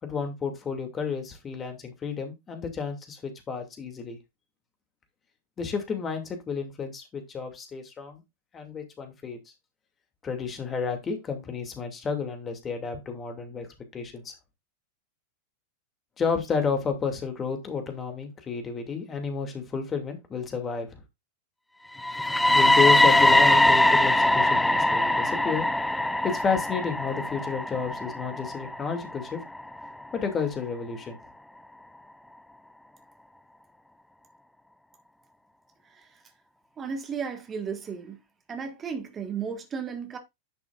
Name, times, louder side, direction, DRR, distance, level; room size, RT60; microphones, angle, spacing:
voice 1, 0.0-4.2 5.6-8.2 8.5-9.4 10.2-13.7 13.9-14.3 16.2-21.0 22.5-25.7 26.2-29.4 30.1-31.2, left 5 dB, 20° left, 2.4 m, -31 dB
sound 1, 22.0-29.9, left 1 dB, 5° left, 0.6 m, -22 dB
voice 2, 36.8-38.2 38.5-40.2, right 6 dB, 20° right, 1.7 m, -34 dB
10.5 x 6.2 x 2.5 m
figure-of-eight pair, 90°, 0 cm